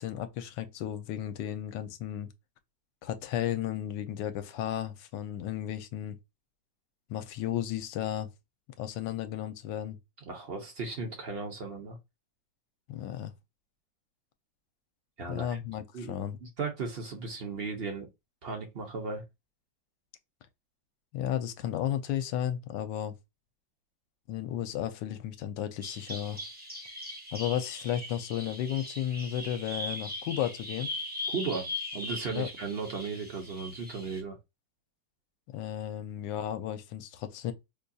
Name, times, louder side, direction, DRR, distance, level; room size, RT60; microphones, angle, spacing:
voice 1, 0.0-2.3 3.0-6.2 7.1-8.3 8.8-10.0 12.9-13.3 15.3-16.4 21.1-23.1 24.3-26.4 27.3-30.9 32.4-32.5 35.5-37.5, left 11 dB, 80° left, 1.2 m, -33 dB
voice 2, 10.3-12.0 15.2-15.6 15.9-18.1 18.4-19.2 31.3-34.4, right 4 dB, 55° right, 0.7 m, -36 dB
Bird vocalization bird call bird song, 25.8-34.2, left 1 dB, 10° right, 0.5 m, -40 dB
4.8 x 2.3 x 2.7 m
omnidirectional pair, 2.0 m